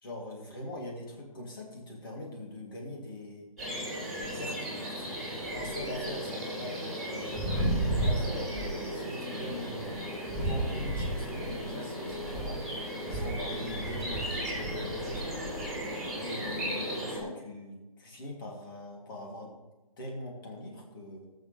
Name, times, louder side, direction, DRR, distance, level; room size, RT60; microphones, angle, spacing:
voice 1, 0.0-3.5 4.3-5.1 5.5-7.5 8.0-10.0 10.4-12.6 13.1-15.4 16.2-19.5 20.0-21.3, left 1 dB, 40° left, -1 dB, 3.2 m, -42 dB
sound 1, 3.6-17.2, right 1 dB, ahead, 3.5 m, -34 dB
19.0 x 7.1 x 3.5 m, 1.1 s
hypercardioid pair, 165°, 18 cm